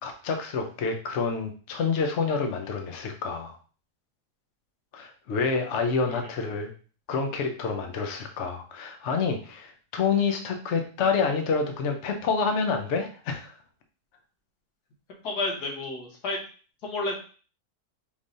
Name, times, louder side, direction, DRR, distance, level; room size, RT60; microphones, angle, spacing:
voice 1, 0.0-3.6 4.9-6.7 7.1-13.5, left 5 dB, 60° left, 5 dB, 0.9 m, -28 dB
voice 2, 15.2-16.4 16.8-17.2, left 2 dB, 80° left, 0 dB, 1.7 m, -30 dB
5.3 x 3.3 x 2.6 m, 0.38 s
omnidirectional pair, 1.7 m